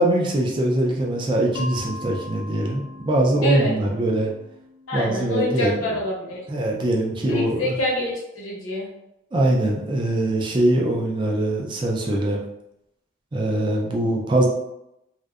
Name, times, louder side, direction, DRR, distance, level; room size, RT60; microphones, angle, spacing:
voice 1, 0.0-4.3 4.9-5.8 6.5-7.8 9.3-12.4 13.3-14.5, right 1 dB, 25° right, 0 dB, 0.3 m, -22 dB
Mallet percussion, 1.5-6.3, left 2 dB, 60° left, 0.3 m, -41 dB
voice 2, 3.4-3.8 4.9-6.4 7.3-8.9, left 1 dB, 85° left, -2 dB, 0.7 m, -26 dB
2.6 x 2.1 x 2.3 m, 0.86 s
head